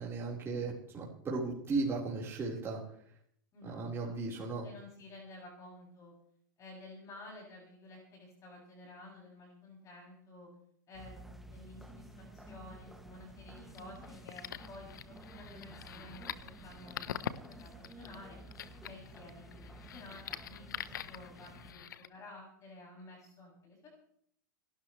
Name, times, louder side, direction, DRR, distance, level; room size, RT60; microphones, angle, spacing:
voice 1, 0.0-2.8 3.6-4.7, right 3 dB, 25° right, -4 dB, 4.5 m, -36 dB
voice 2, 3.5-6.1 6.6-10.5 10.9-18.4 18.8-21.8 22.1-23.9, left 2 dB, 30° left, -2 dB, 7.3 m, -52 dB
sound 1, 10.9-21.7, right 2 dB, ahead, 2.2 m, -52 dB
sound 2, 13.6-22.1, left 10 dB, 75° left, 1.0 m, -45 dB
29.0 x 12.5 x 3.3 m, 0.67 s
hypercardioid pair, 100°, 11 cm